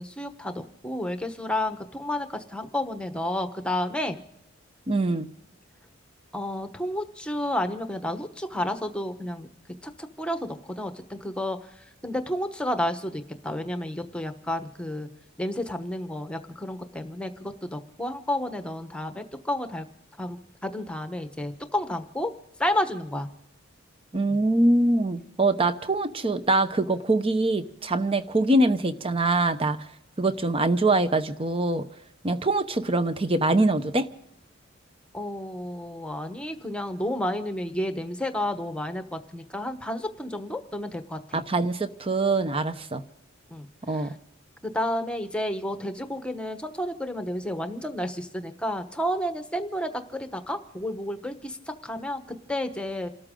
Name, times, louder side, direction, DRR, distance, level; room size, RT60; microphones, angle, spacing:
voice 1, 0.0-4.2 6.3-9.5 9.8-15.1 15.4-19.9 20.2-22.3 22.6-23.3 24.3-24.4 35.1-41.4 43.5-44.1 44.6-53.1, left 1 dB, 5° left, 7 dB, 1.1 m, -31 dB
voice 2, 4.9-5.3 24.1-29.8 30.2-31.8 32.2-34.1 41.3-43.0 43.9-44.1, right 2 dB, 25° right, 11 dB, 0.9 m, -23 dB
28.5 x 13.5 x 3.8 m, 0.81 s
head